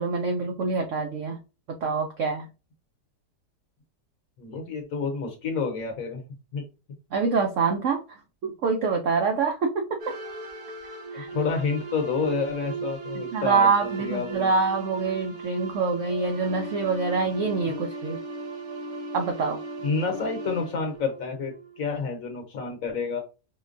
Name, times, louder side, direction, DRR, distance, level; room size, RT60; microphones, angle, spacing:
voice 1, 0.0-1.4 1.8-2.5 7.1-10.1 11.1-11.3 13.3-18.2 19.1-19.6, right 4 dB, 75° right, 3 dB, 0.7 m, -25 dB
voice 2, 4.4-6.2 6.5-6.6 11.1-14.5 19.8-23.2, left 4 dB, 60° left, 3 dB, 1.1 m, -29 dB
sound 1, 10.0-21.8, right 4 dB, 60° right, 1.6 m, -37 dB
5.0 x 2.2 x 2.5 m, 0.31 s
omnidirectional pair, 1.9 m